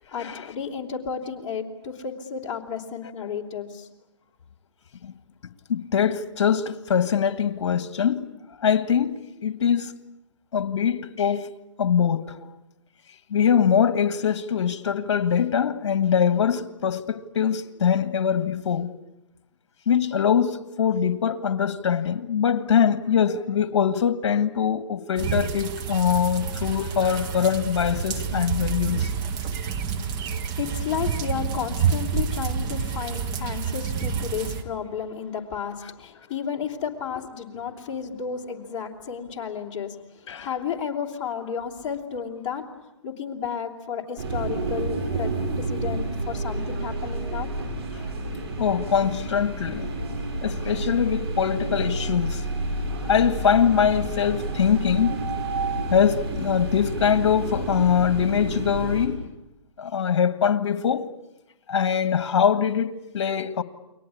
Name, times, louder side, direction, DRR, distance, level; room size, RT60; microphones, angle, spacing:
voice 1, 0.1-3.9 29.4-42.6 43.0-47.5, left 7 dB, 30° left, 3.1 m, -32 dB
voice 2, 5.7-8.3 8.6-9.9 10.5-11.5 11.8-12.4 13.3-18.9 19.9-29.1 40.3-40.5 48.6-49.9 50.4-52.4 53.1-55.2 55.9-59.2 59.8-61.1 61.7-63.6, left 8 dB, 65° left, 1.8 m, -23 dB
sound 1, 25.2-34.6, right 6 dB, 25° right, 1.7 m, -28 dB
sound 2, 44.2-59.1, right 2 dB, 55° right, 7.7 m, -30 dB
29.5 x 23.0 x 8.5 m
hypercardioid pair, 145°, 16 cm